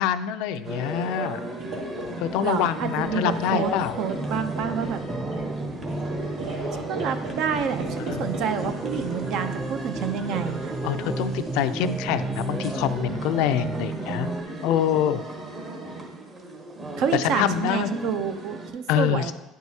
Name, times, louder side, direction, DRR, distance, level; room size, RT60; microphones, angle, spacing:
voice 1, 0.0-1.4 2.2-4.0 8.0-8.3 10.8-14.3 14.6-15.2 17.1-18.0 18.9-19.3, left 10 dB, 75° left, 12 dB, 0.3 m, -25 dB
sound 1, 0.6-18.7, right 2 dB, 35° right, 1.2 m, -36 dB
sound 2, 1.6-12.0, right 1 dB, 85° right, 2.2 m, -38 dB
voice 2, 2.4-3.7 4.0-5.0 6.7-10.7 17.0-19.3, right 7 dB, 65° right, 9 dB, 0.5 m, -28 dB
sound 3, 4.2-14.4, right 3 dB, 10° right, 0.3 m, -33 dB
9.3 x 4.6 x 2.8 m, 1.0 s
cardioid pair, 115°, 0 cm